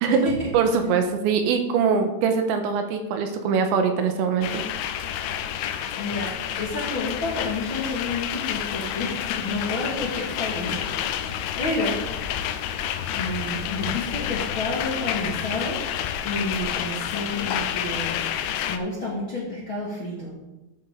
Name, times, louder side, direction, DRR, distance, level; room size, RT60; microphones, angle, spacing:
voice 1, 0.0-4.6, right 6 dB, 80° right, 5 dB, 3.2 m, -23 dB
sound 1, 4.4-18.8, left 10 dB, 85° left, 3.1 m, -29 dB
voice 2, 6.0-10.9 11.2-12.0 13.1-15.8 16.2-18.2 18.7-20.3, left 2 dB, 45° left, -5 dB, 1.7 m, -30 dB
13.5 x 9.2 x 3.8 m, 1.0 s
omnidirectional pair, 5.5 m